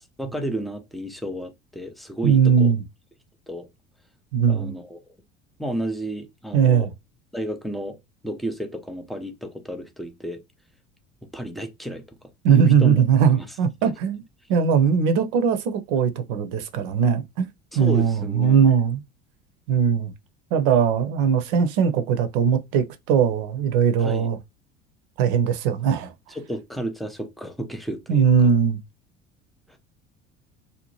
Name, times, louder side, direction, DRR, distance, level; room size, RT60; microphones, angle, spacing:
voice 1, 0.2-2.7 3.5-3.7 4.5-5.0 5.6-6.9 7.3-8.0 8.2-10.4 11.3-12.2 12.5-13.0 13.3-13.5 13.8-13.9 17.7-18.6 24.0-24.3 26.3-28.3, right 1 dB, ahead, 0.3 m, -32 dB
voice 2, 2.2-2.8 4.3-4.7 6.5-6.9 12.4-14.2 14.5-17.5 17.7-19.0 19.7-20.1 20.5-24.4 25.2-26.1 28.1-28.8, right 7 dB, 55° right, 0.6 m, -20 dB
2.7 x 2.0 x 3.0 m
figure-of-eight pair, 65°, 35 cm